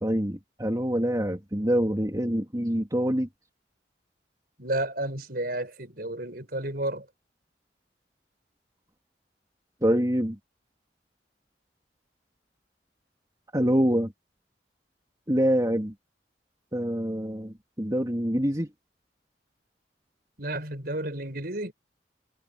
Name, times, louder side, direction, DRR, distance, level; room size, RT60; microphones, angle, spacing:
voice 1, 0.0-3.3 9.8-10.4 13.5-14.1 15.3-15.9 16.7-18.7, equal, 20° right, 2.9 m, -25 dB
voice 2, 4.6-7.1 20.4-21.7, right 1 dB, 55° right, 5.8 m, -31 dB
head